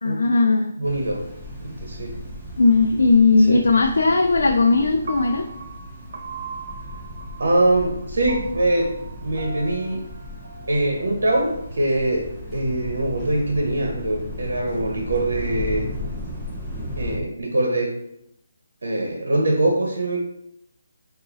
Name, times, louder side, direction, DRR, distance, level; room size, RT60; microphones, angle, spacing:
voice 1, 0.0-0.7 2.6-5.5, left 3 dB, 85° left, 3 dB, 0.5 m, -17 dB
sound 1, 0.8-17.2, left 1 dB, ahead, 0.8 m, -36 dB
voice 2, 0.8-1.2 1.6-2.2 3.5-3.6 7.4-8.9 9.2-10.0 10.7-15.9 17.0-18.0 18.8-20.2, right 1 dB, 75° right, 0 dB, 1.0 m, -23 dB
Piano, 5.1-11.2, right 4 dB, 55° right, 0.4 m, -39 dB
4.8 x 2.6 x 3.9 m, 0.79 s
hypercardioid pair, 175°, 0 cm